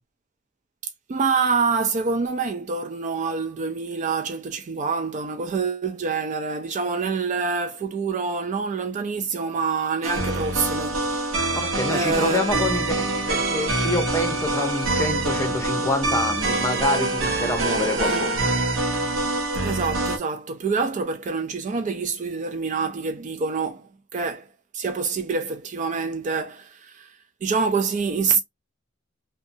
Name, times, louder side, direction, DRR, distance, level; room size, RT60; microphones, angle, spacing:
voice 1, 1.1-11.6 11.9-12.6 18.1-18.3 19.6-24.5 24.7-27.2 27.4-28.4, right 5 dB, 40° right, 0.3 m, -26 dB
sound 1, 10.0-20.2, right 2 dB, 85° right, 0.7 m, -25 dB
voice 2, 11.5-18.5, left 2 dB, 15° left, 0.8 m, -27 dB
2.7 x 2.2 x 2.6 m
head